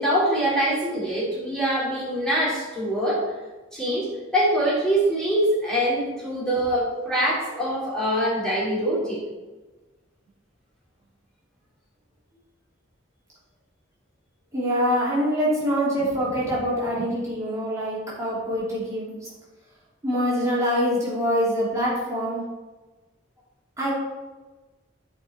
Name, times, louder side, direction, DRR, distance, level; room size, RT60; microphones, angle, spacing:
voice 1, 0.0-3.3 3.7-9.2, right 1 dB, 5° left, -8 dB, 3.0 m, -24 dB
voice 2, 14.5-19.3 20.0-22.4 23.8-23.9, equal, 15° right, -8 dB, 2.8 m, -24 dB
13.0 x 4.8 x 4.3 m, 1.2 s
head